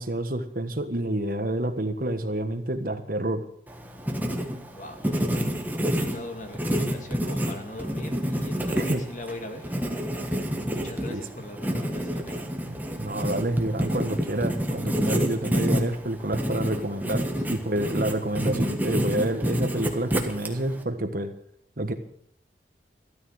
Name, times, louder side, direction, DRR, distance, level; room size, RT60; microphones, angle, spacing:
voice 1, 0.0-3.4 8.7-9.0 10.4-10.5 11.1-11.2 12.6-21.3 21.8-21.9, right 1 dB, 50° right, 7 dB, 1.5 m, -28 dB
Writing, 3.7-20.8, equal, 10° right, 1.5 m, -28 dB
voice 2, 4.7-5.5 5.8-9.8 10.7-12.4 17.4-17.6, left 1 dB, 40° left, 6 dB, 1.9 m, -40 dB
13.5 x 13.0 x 6.4 m, 0.66 s
head